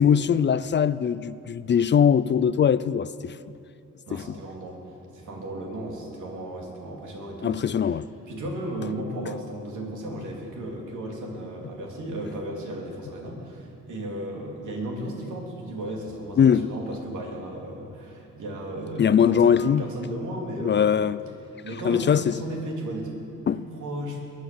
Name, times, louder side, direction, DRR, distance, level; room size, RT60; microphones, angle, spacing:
voice 1, 0.0-3.4 4.1-4.2 7.4-8.1 16.4-16.7 19.0-19.8 20.6-21.2 21.8-22.3 23.5-23.6, left 8 dB, 40° left, 0.4 m, -21 dB
voice 2, 4.1-4.8 5.1-8.0 8.3-21.1 21.6-24.2, right 1 dB, 85° right, 3.2 m, -35 dB
22.0 x 9.3 x 7.0 m
cardioid pair, 115°, 29 cm